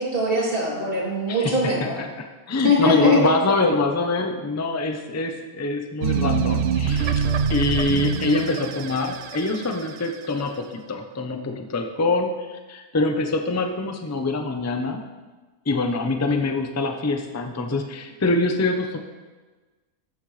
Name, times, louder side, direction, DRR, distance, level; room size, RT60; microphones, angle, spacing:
voice 1, 0.0-1.9 2.6-3.2, left 2 dB, 35° right, -6 dB, 3.4 m, -21 dB
voice 2, 1.3-7.2 7.5-15.0 15.7-19.0, left 2 dB, 15° left, 4 dB, 0.5 m, -25 dB
sound 1, 6.0-10.4, right 7 dB, 70° right, 0.6 m, -25 dB
13.0 x 9.3 x 3.3 m, 1.3 s
omnidirectional pair, 1.7 m